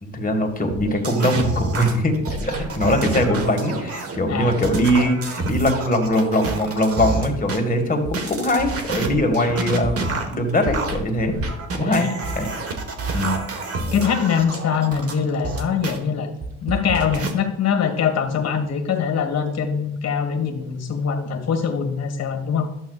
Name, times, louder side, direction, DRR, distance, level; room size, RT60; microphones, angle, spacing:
voice 1, 0.0-11.4 11.8-12.5 13.1-13.4, left 1 dB, 30° left, 3 dB, 1.6 m, -21 dB
sound 1, 0.7-7.6 8.1-16.0 16.4-17.3, right 3 dB, 50° right, 1.3 m, -28 dB
voice 2, 11.8-12.5 13.9-16.3 16.6-22.7, left 7 dB, 55° left, 5 dB, 1.5 m, -23 dB
12.0 x 7.4 x 2.3 m, 0.84 s
cardioid pair, 90°, 30 cm